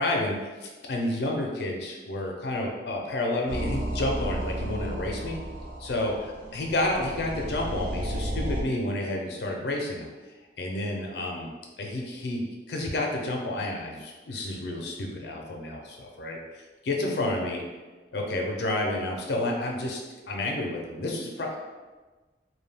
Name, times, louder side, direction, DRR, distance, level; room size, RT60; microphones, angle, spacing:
voice 1, 0.0-5.4 5.8-6.1 6.5-10.1 10.6-11.5 11.8-16.4 16.8-17.6 18.1-20.0 20.3-21.6, left 1 dB, 70° left, 0 dB, 0.4 m, -30 dB
sound 1, 3.5-8.6, right 1 dB, 50° right, 0.3 m, -33 dB
2.2 x 2.1 x 3.2 m, 1.3 s
head